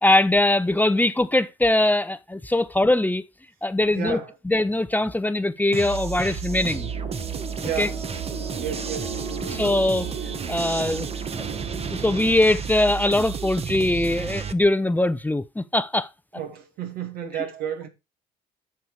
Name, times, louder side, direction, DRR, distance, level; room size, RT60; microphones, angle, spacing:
voice 1, 0.0-3.2 3.6-6.9 7.8-7.9 9.5-10.1 10.5-11.1 11.4-16.1, left 1 dB, 10° left, 0.9 m, -22 dB
voice 2, 3.9-4.3 7.6-8.0 8.5-9.6 16.4-17.9, right 8 dB, 70° right, 2.4 m, -32 dB
sound 1, 5.7-14.5, right 6 dB, 40° right, 1.2 m, -32 dB
sound 2, 6.5-12.3, right 4 dB, 90° right, 3.9 m, -36 dB
10.5 x 6.8 x 4.8 m
hypercardioid pair, 60°, 16 cm